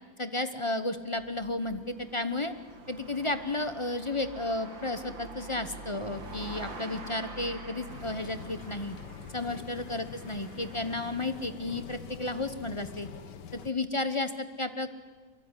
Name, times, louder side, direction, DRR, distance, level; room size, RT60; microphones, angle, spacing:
voice 1, 0.2-2.5 2.9-9.0 9.3-13.1 13.5-14.9, left 2 dB, 25° left, 10 dB, 0.8 m, -33 dB
sound 1, 1.0-11.6, right 2 dB, 80° right, 3.6 m, -46 dB
sound 2, 7.9-13.7, left 7 dB, 65° left, 1.8 m, -45 dB
24.5 x 23.0 x 9.8 m, 1.4 s
omnidirectional pair, 2.0 m